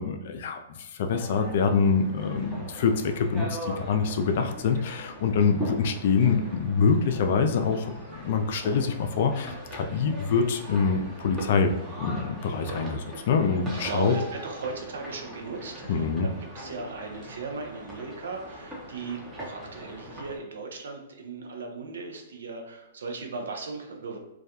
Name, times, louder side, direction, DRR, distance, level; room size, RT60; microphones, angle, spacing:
voice 1, 0.0-14.1 15.9-16.3, left 5 dB, 60° left, 6 dB, 0.3 m, -25 dB
sound 1, 1.1-20.4, right 1 dB, 15° right, 0.7 m, -41 dB
voice 2, 13.8-24.2, right 3 dB, 75° right, 2 dB, 0.5 m, -37 dB
2.2 x 2.2 x 2.8 m, 0.94 s
hypercardioid pair, 120°, 0 cm